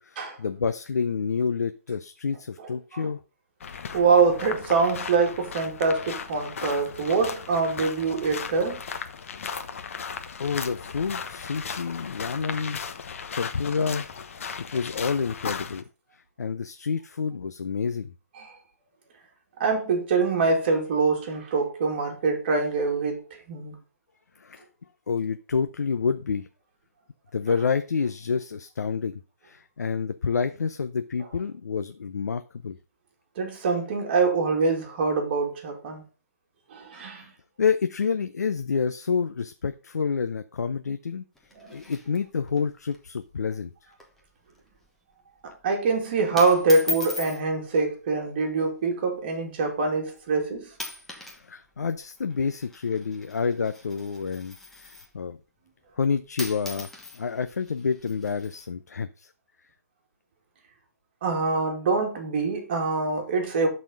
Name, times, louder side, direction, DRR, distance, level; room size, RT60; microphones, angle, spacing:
voice 1, 0.0-3.2 10.4-14.1 14.7-15.8 16.1-18.1 24.4-24.6 25.1-26.5 27.3-32.8 37.2-37.3 37.6-41.2 41.7-43.9 51.3-55.4 56.0-59.3, left 5 dB, 85° left, 0.7 m, -28 dB
voice 2, 2.6-3.1 3.9-8.8 18.4-18.6 19.6-23.8 33.4-36.0 36.7-37.3 41.6-41.7 45.4-50.7 61.2-63.7, right 4 dB, 40° right, 2.4 m, -24 dB
sound 1, 3.6-15.8, left 6 dB, 55° left, 1.2 m, -36 dB
sound 2, 41.3-42.6 42.9-43.0 43.3-43.6 43.9-44.2 44.6-44.9 45.6-45.9 46.4-47.4 48.4-48.7 49.4-49.5 50.2-50.4 50.7-51.4 51.7-55.2 56.0-56.1 56.4-58.7, left 3 dB, 5° left, 1.2 m, -38 dB
12.0 x 4.3 x 5.2 m
hypercardioid pair, 160°, 9 cm